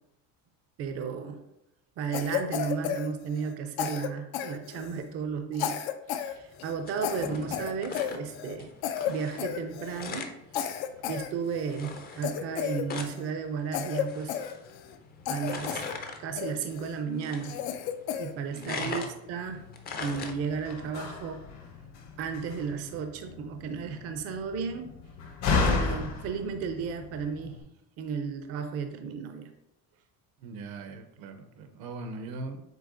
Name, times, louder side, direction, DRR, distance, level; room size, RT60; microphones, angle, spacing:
voice 1, 0.8-1.4 2.0-5.8 6.1-8.7 9.1-10.3 11.1-14.4 15.3-15.9 16.2-17.6 17.8-17.9 18.2-19.7 20.0-21.5 22.2-24.9 25.6-27.7 28.0-29.5, right 6 dB, 40° right, 6 dB, 0.4 m, -34 dB
Cough, 2.1-3.5 3.8-5.1 5.5-6.3 6.6-6.7 7.0-8.6 8.8-9.1 9.4-10.1 10.5-11.7 12.2-13.3 13.7-15.0 15.3-15.9 16.4-16.9 17.4-18.3, left 9 dB, 85° left, 0.5 m, -33 dB
sound 1, 6.4-20.8, left 4 dB, 25° left, 0.4 m, -42 dB
voice 2, 18.5-19.1 30.4-32.6, right 3 dB, 80° right, 7 dB, 0.7 m, -40 dB
Slam, 20.0-27.6, left 4 dB, 45° left, 0.8 m, -34 dB
7.6 x 2.7 x 2.6 m, 0.81 s
cardioid pair, 160°, 37 cm